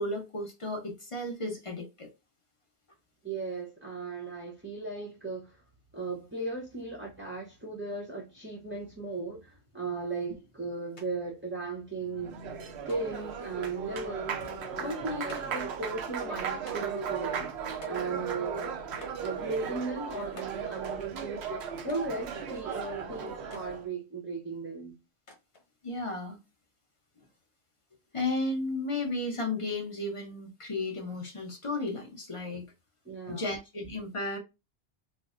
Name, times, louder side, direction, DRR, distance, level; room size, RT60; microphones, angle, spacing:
voice 1, 0.0-2.1 25.8-26.4 28.1-32.6 33.3-34.4, left 2 dB, 35° left, 0.7 m, -33 dB
voice 2, 3.2-5.6 5.9-12.4 12.9-14.5 14.8-17.5 17.9-18.8 19.2-21.4 21.8-25.0 33.1-33.5, right 3 dB, 15° right, 0.6 m, -36 dB
sound 1, 11.0-11.1 11.4-12.1 12.9-13.3 14.4-14.7 15.3-15.7 16.7-17.1 17.8-18.4 19.0-19.3 20.4-20.7 21.9-22.2 23.5-23.7 25.3-25.7, left 3 dB, 80° left, 1.3 m, -52 dB
Applause, 12.0-23.9, right 6 dB, 75° right, 0.9 m, -36 dB
4.1 x 2.0 x 2.4 m
omnidirectional pair, 1.1 m